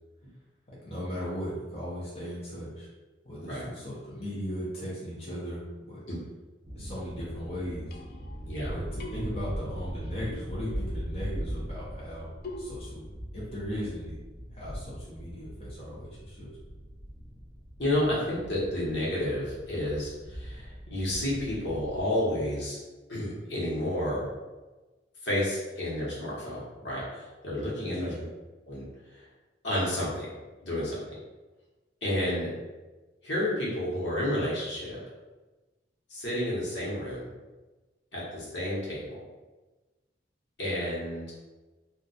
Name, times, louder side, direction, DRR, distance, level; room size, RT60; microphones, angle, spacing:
voice 1, 0.8-2.9 3.2-6.0 6.7-8.0 8.7-12.3 12.6-13.0 13.3-14.2 14.5-16.6 27.9-28.3, equal, 35° left, -8 dB, 0.8 m, -37 dB
sound 1, 6.6-22.0, equal, 10° right, 1.2 m, -40 dB
sound 2, 7.5-8.6 9.0-10.2 12.4-12.8, left 1 dB, 55° left, 0.3 m, -43 dB
voice 2, 17.8-22.8 23.1-24.3 25.2-28.1 28.7-28.8 29.1-29.3 29.6-30.4 30.6-31.2 32.0-32.5 33.2-35.0 36.1-37.3 38.1-39.2 40.6-41.3, left 1 dB, 80° left, -7 dB, 1.2 m, -31 dB
2.4 x 2.3 x 4.0 m, 1.2 s
head